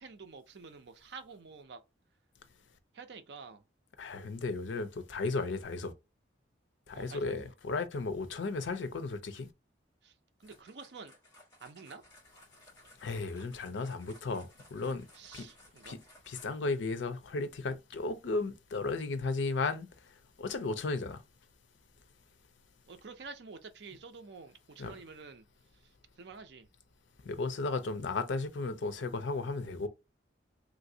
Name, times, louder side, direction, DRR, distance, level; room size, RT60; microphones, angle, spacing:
voice 1, 0.0-1.8 2.9-3.6 6.9-7.5 10.0-10.1 10.4-11.2 11.6-12.0 15.1-16.0 22.9-25.4 26.2-26.7, right 4 dB, 65° right, 0.5 m, -49 dB
voice 2, 4.0-5.9 6.9-9.5 13.0-15.0 15.3-15.5 15.9-16.0 16.3-19.9 20.4-21.2 24.8-24.9 27.2-29.9, left 3 dB, 80° left, 0.5 m, -34 dB
sound 1, 10.4-16.7, left 1 dB, 20° left, 1.5 m, -59 dB
3.2 x 2.5 x 2.6 m
head